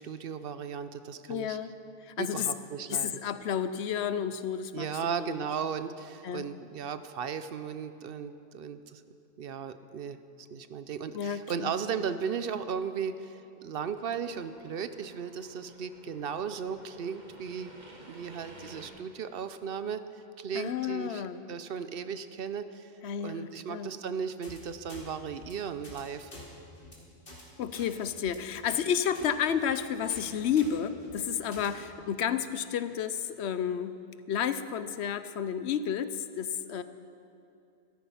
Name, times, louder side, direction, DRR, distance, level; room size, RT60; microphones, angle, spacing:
voice 1, 0.0-1.6 2.2-3.2 4.7-9.0 9.4-17.7 18.0-20.0 20.4-22.9 23.2-26.3, right 7 dB, 65° right, 11 dB, 0.8 m, -36 dB
voice 2, 1.3-1.7 2.0-2.5 2.9-4.9 5.2-5.5 6.2-6.5 11.1-11.7 20.5-21.4 23.0-24.0 27.6-34.0 34.3-36.8, left 8 dB, 85° left, 12 dB, 0.9 m, -31 dB
sound 1, 13.7-18.9, right 1 dB, 45° right, 1.9 m, -53 dB
sound 2, 24.4-24.6 24.9-25.0 25.3-25.5 25.8-26.0 26.3-26.4 26.8-26.9 27.3-27.4 27.7-27.9 28.2-28.4 28.7-28.8 29.1-29.3 29.6-29.8 30.1-30.3 30.6-30.7 31.0-31.2 31.5-31.7, left 1 dB, 60° left, 2.8 m, -47 dB
14.5 x 13.5 x 5.6 m, 2.6 s
omnidirectional pair, 1.1 m